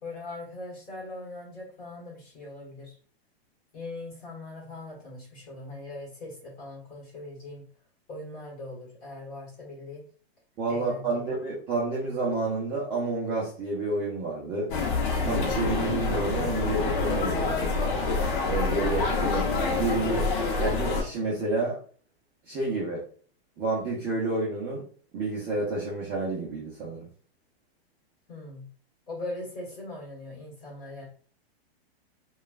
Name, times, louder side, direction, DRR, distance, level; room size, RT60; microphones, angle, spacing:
voice 1, 0.0-3.0 3.7-7.6 8.1-10.1 10.7-11.3 28.3-28.6 29.1-31.0, left 2 dB, 25° left, -3 dB, 1.4 m, -40 dB
voice 2, 10.6-14.7 15.2-17.7 18.5-20.3 20.6-21.8 22.5-23.0 23.6-24.8 25.1-27.1, right 3 dB, 20° right, -6 dB, 0.5 m, -29 dB
sound 1, 14.7-21.0, left 3 dB, 50° left, 0.7 m, -27 dB
3.1 x 2.3 x 2.3 m, 0.43 s
hypercardioid pair, 150°, 31 cm